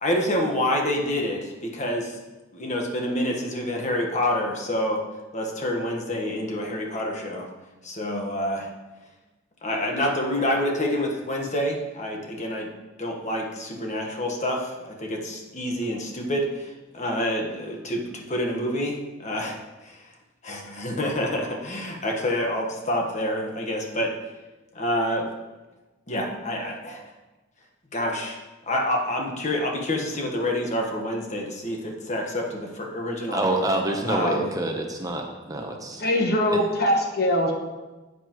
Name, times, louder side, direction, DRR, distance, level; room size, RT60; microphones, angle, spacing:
voice 1, 0.0-2.2 2.5-5.0 5.3-7.5 7.8-8.7 9.6-12.7 13.0-20.1 20.4-24.1 24.7-25.3 26.1-27.0 27.9-28.4 28.7-33.4 34.0-34.5, left 1 dB, 40° left, 1 dB, 1.4 m, -27 dB
voice 2, 33.3-36.0 36.5-36.6, right 1 dB, 20° right, 2 dB, 0.9 m, -27 dB
voice 3, 36.0-37.5, left 1 dB, 55° left, 2 dB, 1.3 m, -22 dB
12.0 x 8.1 x 3.1 m, 1.2 s
head